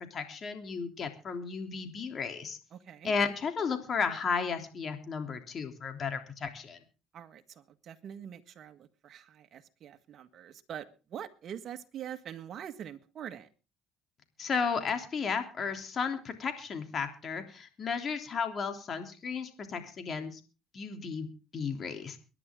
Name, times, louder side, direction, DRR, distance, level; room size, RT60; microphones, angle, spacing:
voice 1, 0.1-2.6 3.0-6.8 14.4-20.4 20.7-21.3 21.5-22.2, left 5 dB, 45° left, 6 dB, 3.2 m, -34 dB
voice 2, 2.7-3.1 7.1-13.5, right 9 dB, 55° right, 8 dB, 1.7 m, -44 dB
23.5 x 11.0 x 3.8 m, 0.33 s
supercardioid pair, 80°, 0 cm